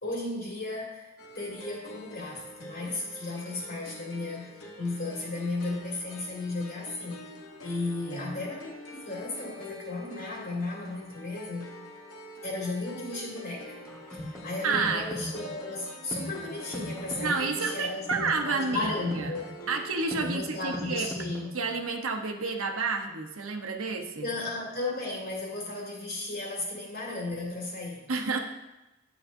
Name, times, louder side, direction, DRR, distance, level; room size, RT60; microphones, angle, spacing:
voice 1, 0.0-7.3 7.6-11.7 12.4-13.7 14.1-19.4 20.2-21.6 24.2-28.1, left 2 dB, 50° left, -5 dB, 2.5 m, -35 dB
sound 1, 1.2-20.2, left 1 dB, 80° left, 1.3 m, -46 dB
sound 2, 13.9-21.9, equal, 5° left, 1.3 m, -39 dB
voice 2, 14.6-15.0 17.2-19.3 19.7-21.1 21.5-24.3 28.1-28.4, right 4 dB, 80° right, 3 dB, 1.0 m, -30 dB
11.0 x 9.1 x 2.7 m, 0.98 s
head